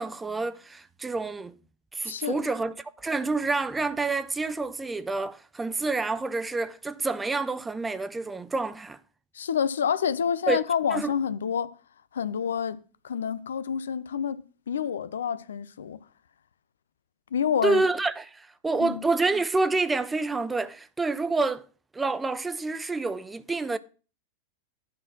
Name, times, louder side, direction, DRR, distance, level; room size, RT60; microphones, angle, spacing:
voice 1, 0.0-1.5 1.9-9.0 10.5-10.6 10.9-11.1 17.6-21.6 21.9-23.8, right 3 dB, 10° right, 0.5 m, -28 dB
voice 2, 2.0-2.4 9.3-11.7 12.1-12.8 13.0-16.0 17.3-17.8 18.8-19.0, left 7 dB, 65° left, 0.5 m, -28 dB
10.0 x 4.2 x 6.0 m
figure-of-eight pair, 90°, 0 cm